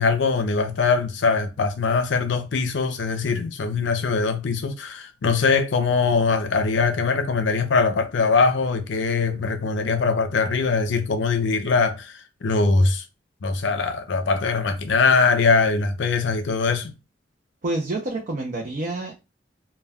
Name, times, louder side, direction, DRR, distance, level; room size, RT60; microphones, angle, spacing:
voice 1, 0.0-13.0 13.4-16.9, left 4 dB, 80° left, 0.5 m, -22 dB
voice 2, 17.6-19.1, right 2 dB, 45° right, 0.5 m, -28 dB
2.2 x 2.2 x 3.4 m
head